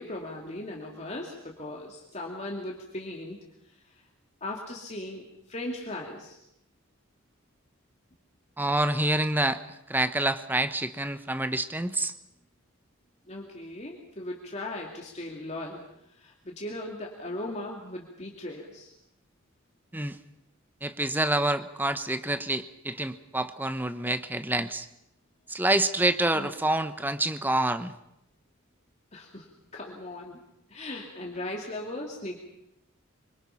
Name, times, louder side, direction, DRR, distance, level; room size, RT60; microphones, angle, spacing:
voice 1, 0.0-3.4 3.6-4.0 4.4-6.4 13.3-18.9 26.3-26.5 29.1-30.4 30.7-32.4, left 1 dB, 30° left, -1 dB, 2.4 m, -38 dB
voice 2, 8.6-9.6 9.9-12.1 19.9-20.2 20.8-24.9 25.5-27.9, right 1 dB, 10° right, 11 dB, 0.9 m, -27 dB
25.0 x 24.5 x 5.8 m, 0.81 s
head